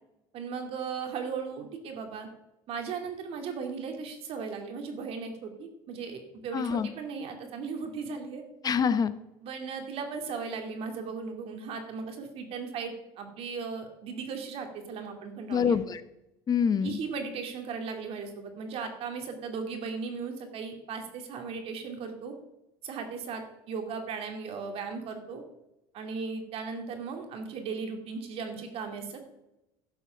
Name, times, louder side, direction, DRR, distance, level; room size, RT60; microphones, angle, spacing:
voice 1, 0.3-2.3 2.7-8.4 9.4-15.8 16.8-22.3 22.8-25.4 25.9-29.2, right 5 dB, 55° right, 5 dB, 2.6 m, -37 dB
voice 2, 6.5-6.9 8.6-9.1 15.5-16.0 16.5-17.0, left 6 dB, 35° left, 13 dB, 0.9 m, -25 dB
12.0 x 6.9 x 5.9 m, 0.92 s
supercardioid pair, 95°, 12 cm